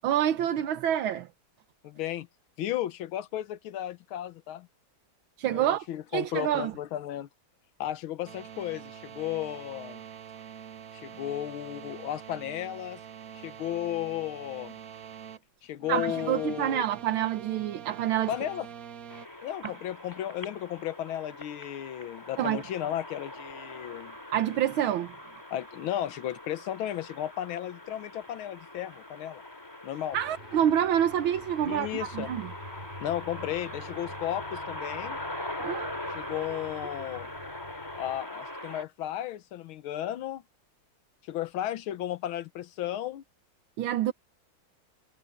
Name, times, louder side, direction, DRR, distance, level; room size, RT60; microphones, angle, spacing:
voice 1, 0.0-1.3 5.4-5.9 6.1-6.7 15.9-18.3 19.6-19.7 22.4-22.6 24.3-25.2 30.1-32.5 35.6-35.9 36.3-36.6 43.8-44.1, right 11 dB, 85° right, 1.8 m, -27 dB
voice 2, 1.8-2.3 2.6-4.7 5.5-7.3 7.8-10.0 10.9-13.0 13.3-14.7 15.6-16.8 18.3-18.7 19.4-24.2 25.5-29.4 29.8-30.2 31.6-32.3 33.0-35.2 36.1-37.3 38.0-40.4 41.2-43.2, left 12 dB, 90° left, 1.7 m, -34 dB
sound 1, 8.2-15.4 15.8-19.3, right 8 dB, 50° right, 1.3 m, -45 dB
sound 2, 19.1-38.8, left 1 dB, 10° left, 2.8 m, -42 dB
Aircraft, 30.1-38.2, right 1 dB, 25° right, 5.0 m, -48 dB
omnidirectional pair, 2.2 m